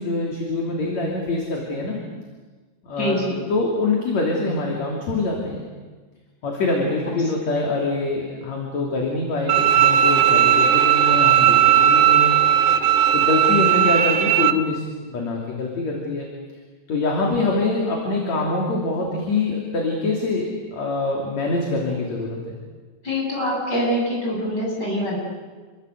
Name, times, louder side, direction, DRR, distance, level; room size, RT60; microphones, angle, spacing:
voice 1, 0.0-2.0 2.8-3.2 3.5-5.7 6.4-12.8 13.1-14.8 15.1-16.3 16.9-22.4, left 3 dB, 45° left, -1 dB, 4.0 m, -24 dB
voice 2, 3.0-3.4 23.0-25.2, equal, 25° left, -3 dB, 8.6 m, -24 dB
Bowed string instrument, 9.5-14.5, right 10 dB, 80° right, 1.8 m, -16 dB
28.5 x 23.5 x 8.2 m, 1.4 s
omnidirectional pair, 4.8 m